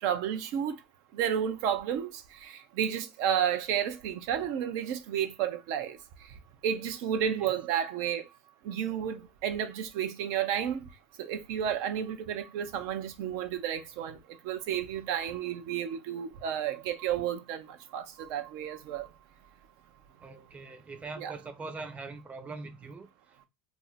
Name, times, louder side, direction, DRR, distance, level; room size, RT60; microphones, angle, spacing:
voice 1, 0.0-0.7 1.1-6.0 6.6-8.2 8.6-10.8 11.2-14.2 14.4-19.1 21.2-21.3, right 9 dB, 65° right, 0.6 m, -31 dB
voice 2, 20.2-23.1, right 3 dB, 25° right, 0.7 m, -42 dB
2.6 x 2.2 x 4.0 m
supercardioid pair, 95°, 5 cm